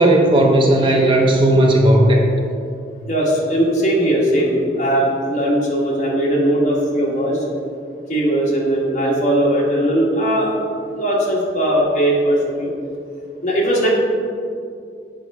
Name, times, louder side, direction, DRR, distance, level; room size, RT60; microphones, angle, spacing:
voice 1, 0.0-2.3, right 1 dB, 30° right, 1 dB, 0.7 m, -14 dB
voice 2, 3.1-7.4 8.1-12.7 13.4-13.9, right 1 dB, 40° left, -4 dB, 1.6 m, -19 dB
8.3 x 5.1 x 4.7 m, 2.4 s
head